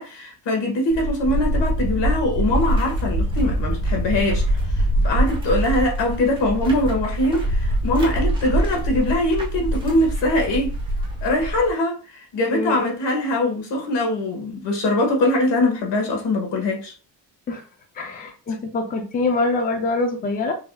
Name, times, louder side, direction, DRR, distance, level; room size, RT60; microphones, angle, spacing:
voice 1, 0.0-4.4 4.7-10.7 11.2-16.9, left 1 dB, 75° left, 1.5 m, -22 dB
sound 1, 0.9-11.7, right 1 dB, 10° right, 0.9 m, -24 dB
voice 2, 12.5-12.8 17.5-17.6 18.0-20.5, left 3 dB, 20° left, 0.5 m, -24 dB
5.6 x 2.7 x 2.3 m
cardioid pair, 165°, 43 cm